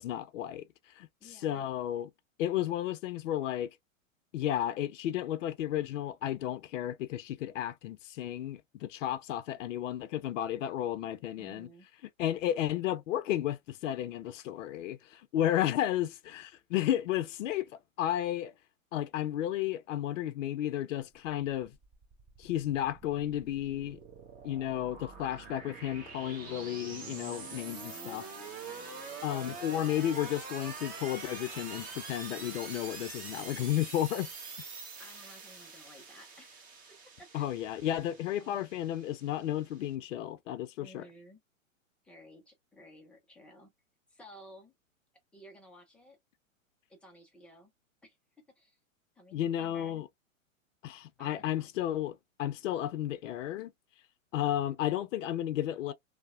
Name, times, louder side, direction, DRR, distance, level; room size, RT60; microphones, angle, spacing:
voice 1, 0.0-2.1 2.4-3.7 4.3-11.7 12.2-18.5 18.9-21.7 22.4-24.0 24.4-28.3 29.2-34.3 37.3-41.0 49.3-50.1 50.8-53.7 54.3-55.9, left 12 dB, 65° left, 0.5 m, -33 dB
voice 2, 1.2-1.6 11.4-11.9 12.2-12.4 27.8-29.2 35.0-36.6 37.2-37.5 38.4-38.7 40.8-41.4 42.0-43.7 44.1-44.7 45.3-46.2 46.9-47.7 48.0-48.2 48.6-48.8 49.2-50.0 51.2-51.7 54.7-54.8, equal, 5° left, 0.3 m, -55 dB
sound 1, 21.1-39.9, right 4 dB, 20° right, 0.8 m, -45 dB
2.7 x 2.0 x 2.4 m
hypercardioid pair, 120°, 40 cm